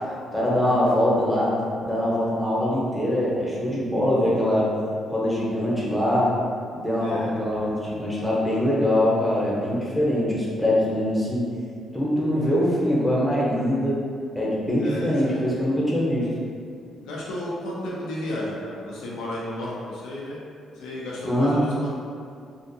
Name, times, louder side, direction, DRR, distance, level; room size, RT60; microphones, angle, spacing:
voice 1, 0.3-1.5 1.8-4.7 5.1-6.3 6.7-11.4 11.9-14.0 14.3-16.3 21.2-21.6, left 1 dB, 5° left, -7 dB, 0.7 m, -23 dB
voice 2, 7.0-7.3 14.8-15.5 17.0-20.4 20.7-22.0, left 1 dB, 90° left, -5 dB, 0.5 m, -33 dB
2.4 x 2.3 x 2.6 m, 2.3 s
cardioid pair, 90°, 0 cm